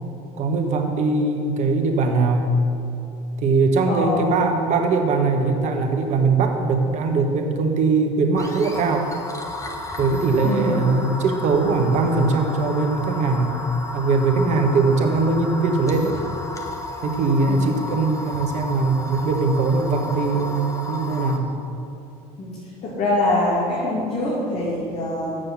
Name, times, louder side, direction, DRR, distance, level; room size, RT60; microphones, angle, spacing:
voice 1, 0.4-2.5 3.4-9.1 10.0-13.6 13.9-16.2 17.0-21.5, right 3 dB, 55° right, 3 dB, 1.4 m, -21 dB
voice 2, 3.9-4.4 10.4-10.9 14.3-14.6 17.5-17.7 22.4-22.6 22.8-25.4, left 1 dB, 50° left, -7 dB, 2.7 m, -24 dB
sound 1, 8.4-21.4, left 2 dB, 20° left, 1.4 m, -33 dB
7.6 x 6.4 x 8.0 m, 2.8 s
hypercardioid pair, 75°, 15 cm